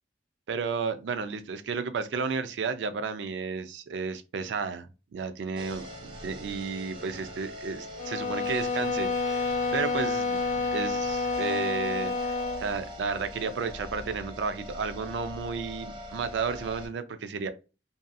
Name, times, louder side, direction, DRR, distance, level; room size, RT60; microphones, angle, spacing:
voice 1, 0.5-17.5, right 5 dB, 80° right, 0.4 m, -33 dB
sound 1, 5.6-16.9, equal, 30° right, 0.5 m, -42 dB
sound 2, 8.0-12.7, left 3 dB, 40° left, 0.4 m, -29 dB
2.7 x 2.5 x 2.2 m
head